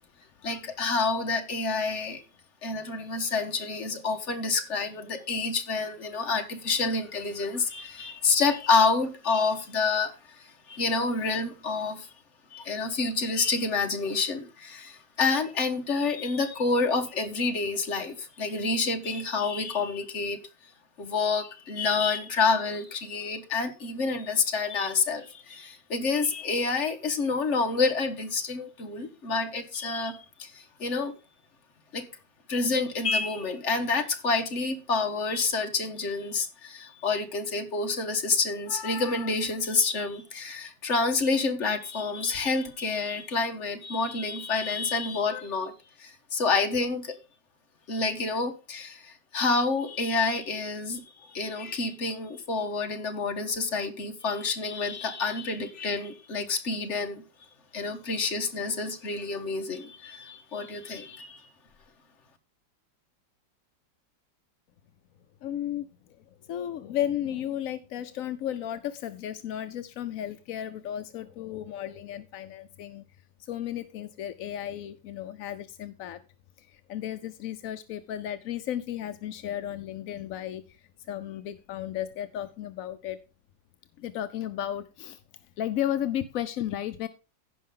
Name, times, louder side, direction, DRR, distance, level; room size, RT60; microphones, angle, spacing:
voice 1, 0.4-2.2 2.6-10.1 10.7-12.1 12.5-20.4 21.0-31.1 31.9-32.1 32.5-45.7 46.0-47.2 47.9-57.2 57.7-61.4, left 4 dB, 40° left, 1.5 m, -28 dB
voice 2, 65.4-65.9 66.4-73.0 73.4-76.2 76.6-80.8 81.1-83.2 84.0-85.2 85.6-87.1, left 11 dB, 70° left, 0.8 m, -34 dB
16.0 x 5.5 x 3.7 m
omnidirectional pair, 2.0 m